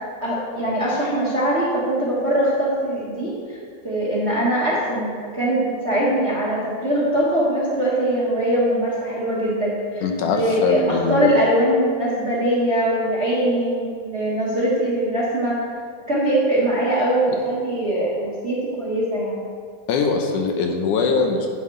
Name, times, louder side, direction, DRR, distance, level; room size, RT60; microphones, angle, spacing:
voice 1, 0.2-3.6 3.8-15.6 16.1-19.5, right 1 dB, 35° right, -7 dB, 1.0 m, -22 dB
voice 2, 10.0-11.3 19.9-21.5, left 5 dB, 85° left, 3 dB, 2.4 m, -22 dB
11.0 x 8.2 x 3.3 m, 2.1 s
omnidirectional pair, 3.4 m